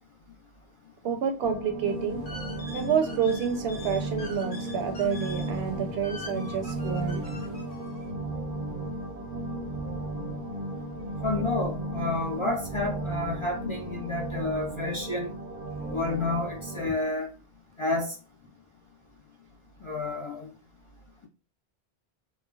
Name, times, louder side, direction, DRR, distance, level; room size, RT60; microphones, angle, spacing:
voice 1, 1.0-2.3 2.7-7.2 16.8-16.9, right 7 dB, 75° right, 0.8 m, -29 dB
sound 1, 1.4-16.9, right 1 dB, 50° right, 0.6 m, -35 dB
sound 2, 1.9-8.1, left 1 dB, 75° left, 1.2 m, -44 dB
voice 2, 11.2-15.3 15.9-17.3 17.8-18.1 19.8-20.5, left 2 dB, 40° left, 0.4 m, -30 dB
3.2 x 2.1 x 2.3 m
omnidirectional pair, 1.1 m